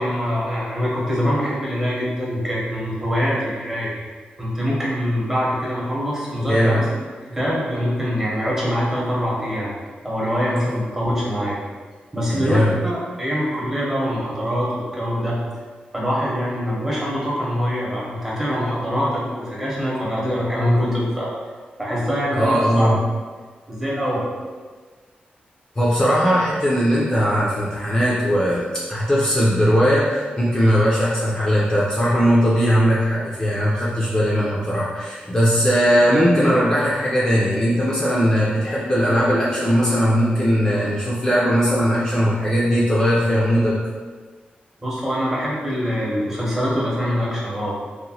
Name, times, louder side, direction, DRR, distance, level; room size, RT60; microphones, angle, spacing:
voice 1, 0.0-3.9 4.4-6.9 7.2-9.7 10.0-11.6 12.1-15.4 15.9-21.3 21.8-23.0 23.7-24.3 44.8-47.7, equal, 15° right, -6 dB, 0.8 m, -24 dB
voice 2, 6.4-6.8 12.3-12.7 22.4-23.0 25.8-43.7, equal, 20° left, -6 dB, 0.4 m, -19 dB
2.9 x 2.1 x 2.7 m, 1.4 s
wide cardioid pair, 125°, 3 cm